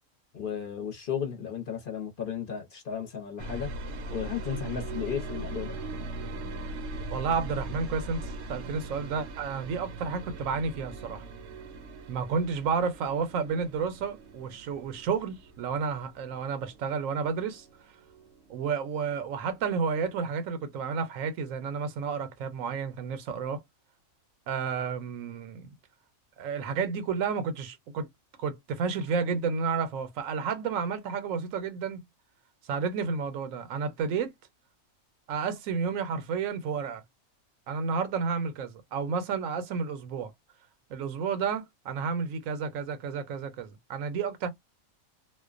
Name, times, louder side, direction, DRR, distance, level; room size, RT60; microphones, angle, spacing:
voice 1, 0.3-3.7 4.1-5.8, left 8 dB, 50° left, 0.8 m, -34 dB
sound 1, 3.4-19.2 19.5-20.2, right 2 dB, 65° right, 0.8 m, -40 dB
voice 2, 7.1-11.2 12.1-17.7 18.5-23.6 24.5-25.7 26.4-28.1 28.4-32.0 32.6-34.3 35.3-37.0 37.7-40.3 40.9-44.5, right 5 dB, 85° right, 1.0 m, -31 dB
2.4 x 2.1 x 2.4 m
omnidirectional pair, 1.4 m